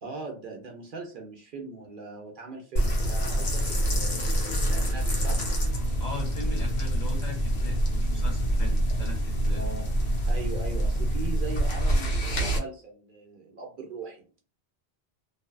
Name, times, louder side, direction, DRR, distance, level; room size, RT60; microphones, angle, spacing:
voice 1, 0.0-5.4 9.6-9.9 10.3-14.2, right 3 dB, 60° right, 2 dB, 0.7 m, -40 dB
sound 1, 2.8-12.6, right 1 dB, 75° left, 1.0 m, -26 dB
voice 2, 6.0-9.6, left 4 dB, 45° left, 0 dB, 0.9 m, -39 dB
2.6 x 2.2 x 2.2 m, 0.39 s
omnidirectional pair, 1.1 m